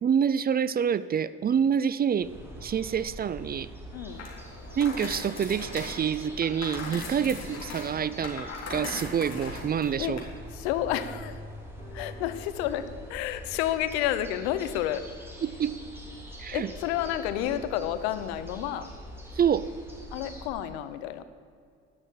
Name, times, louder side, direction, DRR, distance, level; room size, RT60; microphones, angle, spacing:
voice 1, 0.0-2.3 2.6-3.7 4.8-10.2 15.4-15.8 16.4-16.7 19.3-19.7, right 8 dB, 30° right, 17 dB, 0.5 m, -27 dB
sound 1, 2.2-20.5, equal, 5° right, 3.2 m, -44 dB
voice 2, 3.9-4.3 7.2-7.3 10.0-10.2 10.5-11.4 11.9-15.1 16.5-18.9 20.1-21.2, left 12 dB, 85° left, 12 dB, 0.8 m, -30 dB
sound 2, 4.1-10.2, left 3 dB, 55° left, 3.6 m, -40 dB
sound 3, 11.8-20.2, left 1 dB, 25° left, 4.0 m, -54 dB
12.0 x 6.5 x 9.3 m, 2.2 s
supercardioid pair, 75°, 31 cm